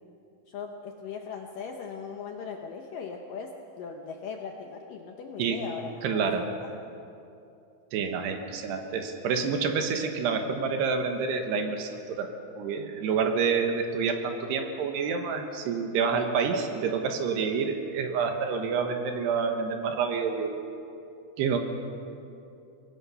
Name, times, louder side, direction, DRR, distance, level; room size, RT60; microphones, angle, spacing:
voice 1, 0.5-6.5, left 6 dB, 75° left, 2 dB, 2.0 m, -39 dB
voice 2, 6.0-6.5 7.9-20.5 21.4-21.6, right 5 dB, 75° right, 5 dB, 3.3 m, -28 dB
24.5 x 19.0 x 5.6 m, 2.7 s
omnidirectional pair, 5.0 m